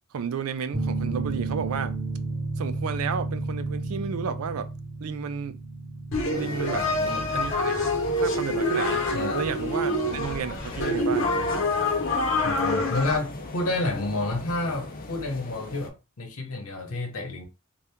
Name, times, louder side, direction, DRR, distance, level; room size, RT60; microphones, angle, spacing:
voice 1, 0.1-2.0 2.6-4.7 5.0-5.6 6.3-6.9 7.3-7.8 8.2-9.0 9.3-11.7, right 6 dB, 80° right, 0.4 m, -32 dB
sound 1, 0.7-11.9, right 3 dB, 20° right, 0.8 m, -34 dB
sound 2, 6.1-13.2, left 1 dB, 60° left, 1.0 m, -26 dB
people talking in a huge hall kraftwerk berlin, 6.3-15.9, left 2 dB, 45° left, 0.6 m, -39 dB
voice 2, 6.7-7.3 9.1-9.5 12.4-17.5, left 2 dB, 85° left, 1.0 m, -30 dB
2.8 x 2.3 x 3.4 m
head